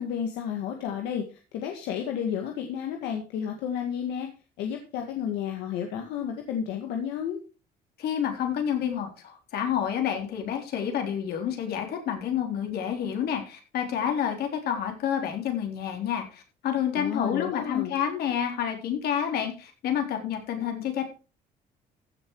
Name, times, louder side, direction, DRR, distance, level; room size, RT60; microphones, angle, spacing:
voice 1, 0.0-4.3 4.6-7.4 16.9-18.0, left 8 dB, 90° left, 3 dB, 1.9 m, -32 dB
voice 2, 8.0-21.0, left 9 dB, 70° left, 3 dB, 3.8 m, -29 dB
15.0 x 7.1 x 4.7 m, 0.34 s
cardioid pair, 110°, 17 cm